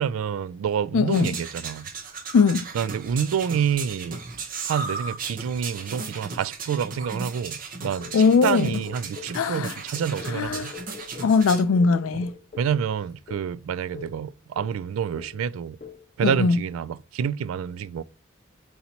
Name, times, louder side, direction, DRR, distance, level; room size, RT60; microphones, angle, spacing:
voice 1, 0.0-1.9 2.7-4.2 4.7-10.7 12.1-12.2 12.6-15.8 16.2-18.0, right 7 dB, 80° right, 0.3 m, -28 dB
voice 2, 0.9-1.4 2.3-2.7 8.1-8.8 9.3-9.7 10.3-10.7 11.2-12.3 16.2-16.6, left 5 dB, 80° left, 0.4 m, -20 dB
sound 1, 1.1-11.6, right 4 dB, 40° right, 0.8 m, -36 dB
sound 2, 8.0-9.4 10.0-12.8 13.3-13.5 13.9-14.2 14.6-14.9 15.2-15.5 15.8-16.1, left 6 dB, 40° left, 0.7 m, -43 dB
4.0 x 2.9 x 4.2 m
head